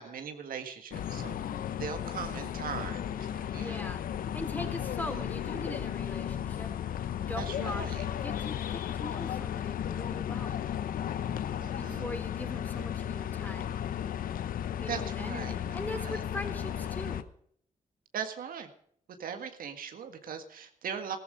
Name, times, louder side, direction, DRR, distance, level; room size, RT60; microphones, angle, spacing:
voice 1, 0.0-1.4 1.8-3.8 5.1-5.2 7.4-8.0 11.6-12.1 14.9-16.2 18.1-18.7 19.2-21.2, right 7 dB, 80° right, 7 dB, 1.8 m, -40 dB
sound 1, 0.9-17.2, left 9 dB, 80° left, 0.9 m, -34 dB
voice 2, 3.6-6.7 7.3-10.6 11.8-13.8 14.8-17.3, left 1 dB, 10° left, 6 dB, 3.6 m, -41 dB
14.5 x 14.0 x 5.1 m, 0.63 s
cardioid pair, 65°, 14 cm